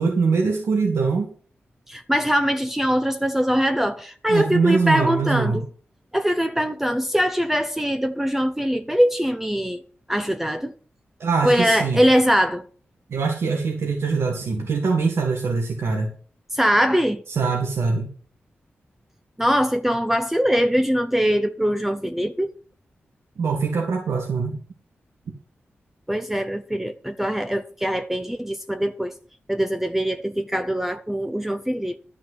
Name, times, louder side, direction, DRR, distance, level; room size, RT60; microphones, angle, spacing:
voice 1, 0.0-1.3 4.3-5.6 11.2-12.0 13.1-16.1 17.3-18.1 23.4-24.6, right 4 dB, 80° right, 1.8 m, -23 dB
voice 2, 1.9-5.6 6.1-9.8 10.1-10.7 11.4-12.6 16.5-17.2 19.4-22.5 26.1-29.1 29.5-32.0, equal, 5° right, 0.7 m, -22 dB
11.5 x 5.4 x 8.1 m
wide cardioid pair, 80°, 4 cm